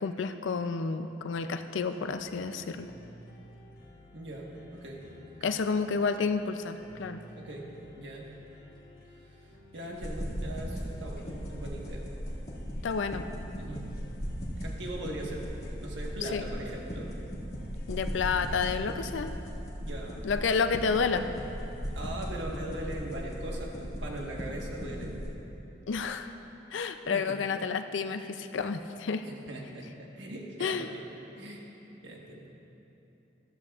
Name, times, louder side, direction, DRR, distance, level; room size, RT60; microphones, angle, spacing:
voice 1, 0.0-2.9 5.4-7.2 12.8-13.2 16.3-16.4 17.9-19.3 20.2-21.3 25.9-26.3 26.7-29.3 30.6-30.9, left 5 dB, 85° left, 8 dB, 0.5 m, -30 dB
sound 1, 1.6-18.0, equal, 50° left, 1.1 m, -54 dB
voice 2, 4.1-5.0 5.4-5.5 7.3-7.7 8.0-8.3 9.2-12.1 13.6-13.9 14.6-15.5 15.8-17.1 19.8-20.2 21.9-25.1 27.1-27.4 29.2-31.0 31.3-31.7 32.0-32.5, right 1 dB, 75° right, -1 dB, 1.4 m, -40 dB
sound 2, 9.9-25.3, equal, 35° left, 2.0 m, -38 dB
13.5 x 13.5 x 2.4 m, 3.0 s
head